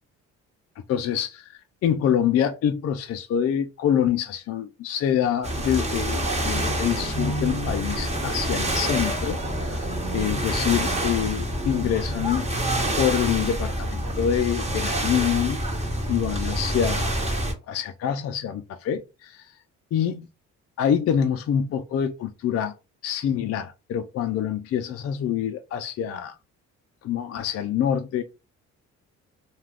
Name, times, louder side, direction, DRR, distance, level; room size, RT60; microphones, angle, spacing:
voice 1, 0.9-12.5 13.0-15.6 16.1-17.2 17.7-19.5 19.9-20.3 20.8-22.7 23.0-26.3 27.0-28.2, left 9 dB, 50° left, 0.4 m, -26 dB
sound 1, 5.4-17.5, right 1 dB, 20° right, 1.0 m, -27 dB
2.4 x 2.3 x 3.3 m
cardioid pair, 90°, 30 cm